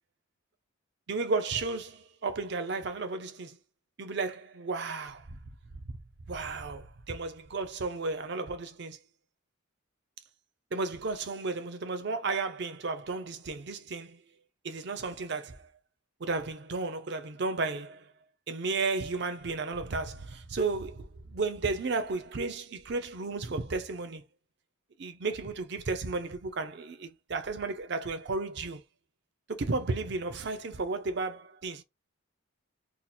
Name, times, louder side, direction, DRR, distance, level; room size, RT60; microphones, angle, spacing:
voice 1, 1.1-3.6 4.0-5.3 6.3-9.0 10.7-14.2 14.6-15.7 16.2-18.1 18.5-24.2 25.0-28.8 29.5-31.8, right 3 dB, 50° right, 0.5 m, -33 dB
2.9 x 2.3 x 4.1 m
head